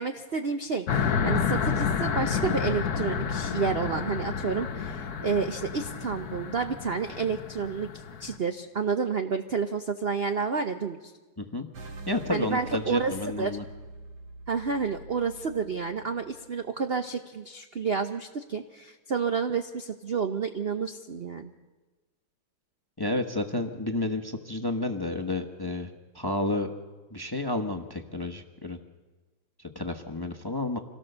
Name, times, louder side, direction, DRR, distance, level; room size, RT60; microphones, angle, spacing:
voice 1, 0.0-11.1 12.3-13.6 14.5-21.5, right 5 dB, 55° right, 7 dB, 0.7 m, -30 dB
sound 1, 0.9-8.4, left 6 dB, 55° left, 1.3 m, -30 dB
sound 2, 11.7-16.6, right 2 dB, 75° right, 2.3 m, -44 dB
voice 2, 12.1-13.6 23.0-25.9 26.1-26.7 27.1-28.8 29.6-30.8, left 2 dB, 15° left, 5 dB, 0.9 m, -31 dB
26.0 x 17.5 x 6.8 m, 1.3 s
omnidirectional pair, 2.1 m